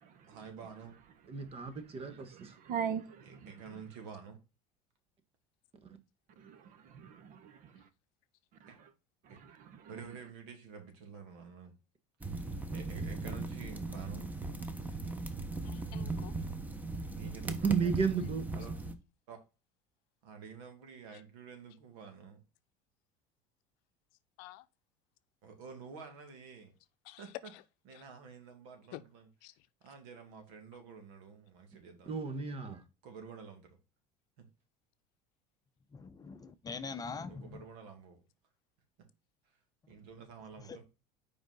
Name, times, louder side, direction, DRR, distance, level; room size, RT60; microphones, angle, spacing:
voice 1, 0.3-1.0 3.2-4.4 8.7-8.8 9.3-9.4 9.9-11.7 12.2-14.3 17.1-17.7 18.5-18.7 19.3-19.4 20.2-22.4 25.4-26.7 27.2-27.3 27.9-29.3 29.8-32.2 33.0-33.8 34.4-34.5 37.3-38.2 39.4-39.6 39.9-40.8, right 6 dB, 75° right, 2.3 m, -50 dB
voice 2, 1.3-2.6 5.8-6.0 17.6-18.5 32.1-32.8, right 6 dB, 35° right, 1.4 m, -33 dB
voice 3, 2.3-3.5 6.4-7.8, right 7 dB, 55° right, 1.0 m, -40 dB
sound 1, 12.2-18.9, right 3 dB, 10° right, 1.1 m, -38 dB
voice 4, 15.6-16.4 24.4-24.7 27.0-27.6 27.9-28.0 28.9-29.0 29.4-29.5, left 17 dB, 70° left, 0.6 m, -48 dB
voice 5, 35.9-37.7 40.6-40.8, left 4 dB, 25° left, 0.7 m, -43 dB
5.1 x 4.9 x 3.8 m
supercardioid pair, 95°, 16 cm